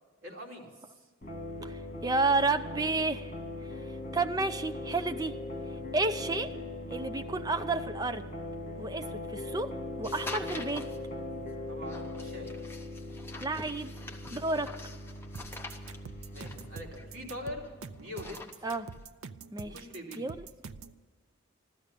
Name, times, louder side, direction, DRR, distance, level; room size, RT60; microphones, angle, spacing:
voice 1, 0.2-0.7 11.7-12.5 16.3-17.7 17.9-18.5 19.6-20.2, left 1 dB, 65° right, -1 dB, 3.0 m, -43 dB
sound 1, 1.2-18.0, left 2 dB, 40° left, 2.6 m, -40 dB
voice 2, 1.6-3.3 4.1-5.3 5.9-6.5 6.9-8.2 8.8-9.7 10.0-10.8 13.4-13.9 14.3-14.7 18.6-18.9 19.5-19.7 20.2-20.5, right 3 dB, 20° right, 8 dB, 0.5 m, -31 dB
sound 2, 10.0-11.0 11.9-17.7 18.0-19.0, left 2 dB, 10° left, 0.9 m, -45 dB
sound 3, 15.3-21.0, right 5 dB, 90° right, 0.6 m, -45 dB
15.0 x 12.5 x 6.7 m, 1.5 s
head